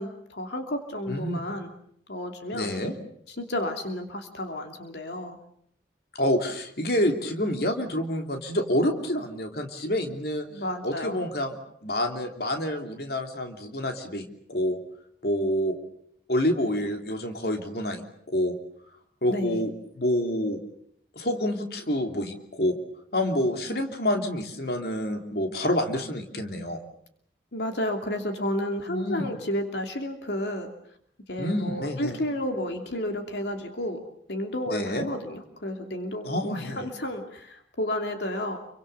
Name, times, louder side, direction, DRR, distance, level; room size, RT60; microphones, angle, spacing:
voice 1, 0.0-1.7 2.1-2.7 3.4-5.4 10.5-11.2 19.3-19.6 27.5-30.7 31.3-34.0 34.3-38.6, left 1 dB, 75° left, 4 dB, 2.9 m, -31 dB
voice 2, 1.1-1.4 2.5-2.9 6.1-10.5 10.8-11.5 11.8-14.8 15.2-15.8 16.3-18.6 19.2-19.7 20.0-20.6 21.1-22.8 23.1-26.8 28.9-29.3 31.4-32.2 34.7-35.1 36.2-36.9, left 1 dB, 60° left, 4 dB, 3.2 m, -28 dB
29.0 x 24.0 x 6.9 m, 0.68 s
head